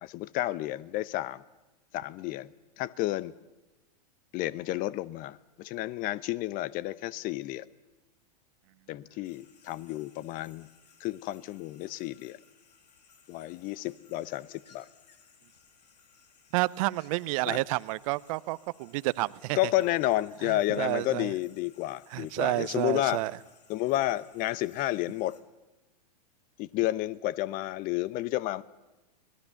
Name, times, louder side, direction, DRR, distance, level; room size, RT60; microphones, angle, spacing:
voice 1, 0.0-1.4 1.9-2.5 2.8-3.3 4.3-7.7 8.9-10.7 11.0-12.4 13.3-14.9 17.4-17.6 19.6-23.2 23.7-25.3 26.6-28.6, left 16 dB, 40° left, 19 dB, 0.9 m, -31 dB
sound 1, 9.2-25.4, left 6 dB, 80° left, 2.7 m, -61 dB
voice 2, 16.5-19.6 20.4-21.3 22.1-23.3, right 21 dB, 55° right, 19 dB, 0.7 m, -30 dB
26.0 x 19.0 x 7.1 m, 1.1 s
hypercardioid pair, 105°, 21 cm